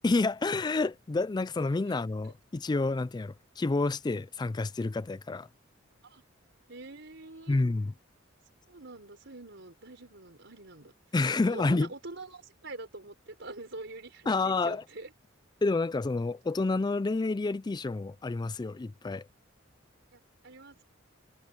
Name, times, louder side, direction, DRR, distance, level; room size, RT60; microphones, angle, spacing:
voice 1, 0.0-5.5 7.5-7.9 11.1-11.9 14.3-14.8 15.6-19.3, left 3 dB, 20° left, 0.3 m, -29 dB
voice 2, 6.7-7.6 8.7-10.9 11.4-15.1 20.1-20.8, right 2 dB, 60° right, 5.4 m, -45 dB
head